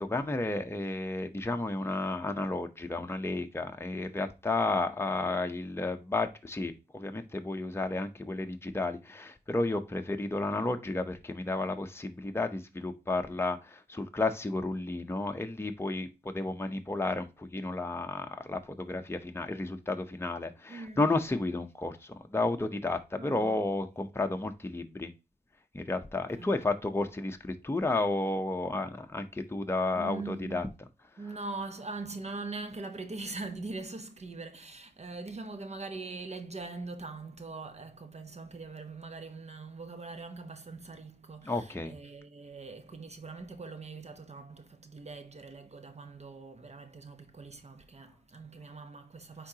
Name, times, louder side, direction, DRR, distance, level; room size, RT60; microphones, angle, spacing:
voice 1, 0.0-25.1 25.7-30.7 41.4-41.9, left 2 dB, 15° left, 0.8 m, -32 dB
voice 2, 20.7-21.1 23.2-23.6 26.3-26.5 29.9-30.7 31.2-49.5, right 3 dB, 40° right, 0.9 m, -42 dB
9.5 x 3.8 x 2.8 m
cardioid pair, 65°, 17 cm